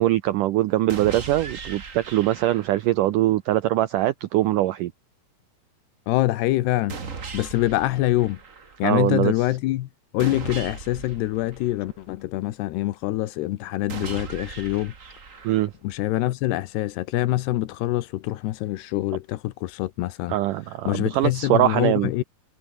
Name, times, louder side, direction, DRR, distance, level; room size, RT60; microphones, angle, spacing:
voice 1, 0.0-4.9 8.8-9.3 15.4-15.7 20.3-22.1, right 15 dB, 90° right, 1.8 m, -22 dB
sound 1, 0.9-2.9 6.9-8.9 10.2-12.2 13.9-15.9, right 5 dB, 50° right, 0.9 m, -38 dB
voice 2, 6.1-7.0 7.3-8.4 8.8-9.9 10.1-14.9 15.8-20.3 20.6-22.2, left 16 dB, 85° left, 3.1 m, -25 dB
omnidirectional pair, 4.8 m